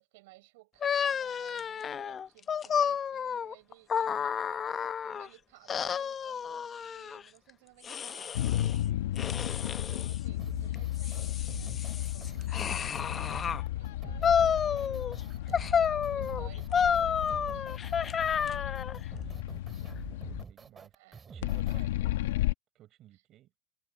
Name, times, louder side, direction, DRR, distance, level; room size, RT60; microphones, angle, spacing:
voice 1, 0.0-9.3 9.7-18.1 20.9-21.2 21.7-22.2, right 22 dB, 75° right, 7.0 m, -58 dB
sound 1, 0.8-5.3 5.7-7.2 7.8-8.8 9.2-10.2 10.7-13.6 14.2-15.2 15.5-19.0, left 7 dB, 30° left, 0.7 m, -31 dB
sound 2, 8.3-20.4 21.4-22.5, left 14 dB, 85° left, 1.1 m, -34 dB
voice 2, 8.8-9.4 14.8-15.6 18.3-22.4 22.7-23.5, right 14 dB, 50° right, 6.4 m, -59 dB
sound 3, 10.4-21.8, right 5 dB, 25° right, 3.1 m, -47 dB
supercardioid pair, 105°, 0 cm